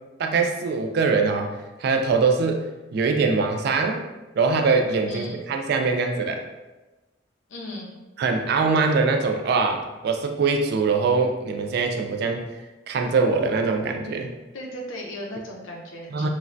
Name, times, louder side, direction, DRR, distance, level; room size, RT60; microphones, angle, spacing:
voice 1, 0.2-1.5 1.8-2.6 2.9-4.0 4.4-6.4 8.2-12.5 12.9-14.3 16.1-16.3, right 4 dB, 55° right, 4 dB, 0.3 m, -22 dB
voice 2, 5.1-5.4 7.5-7.9 14.5-16.3, left 1 dB, 90° left, -1 dB, 0.6 m, -36 dB
3.1 x 2.1 x 2.5 m, 1.1 s
head